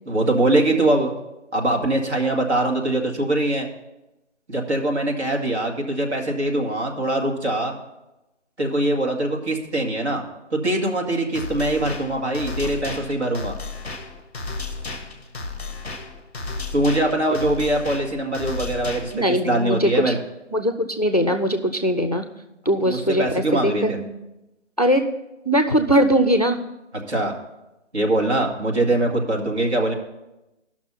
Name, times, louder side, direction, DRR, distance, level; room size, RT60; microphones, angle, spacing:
voice 1, 0.1-1.2 1.5-3.7 4.5-7.7 8.6-10.2 10.5-13.6 16.7-20.2 22.8-24.0 26.9-27.3 27.9-29.9, right 1 dB, 65° right, 0 dB, 2.1 m, -22 dB
sound 1, 11.3-19.3, left 3 dB, 10° left, 0.8 m, -33 dB
voice 2, 19.1-20.1 20.5-22.3 22.7-24.1 24.8-25.1 25.5-26.6, equal, 35° left, 6 dB, 0.4 m, -20 dB
13.0 x 6.0 x 5.6 m, 0.97 s
hypercardioid pair, 175°, 36 cm